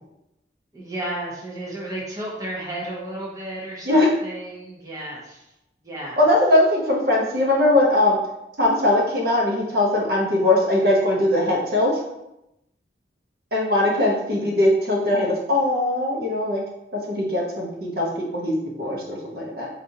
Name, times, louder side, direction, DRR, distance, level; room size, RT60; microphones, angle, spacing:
voice 1, 0.7-5.4 5.8-6.2, right 1 dB, 20° right, -4 dB, 0.6 m, -33 dB
voice 2, 6.2-8.2 8.6-11.9 13.5-16.6 17.1-19.7, left 1 dB, 60° right, -2 dB, 0.8 m, -20 dB
4.4 x 2.5 x 2.6 m, 0.89 s
head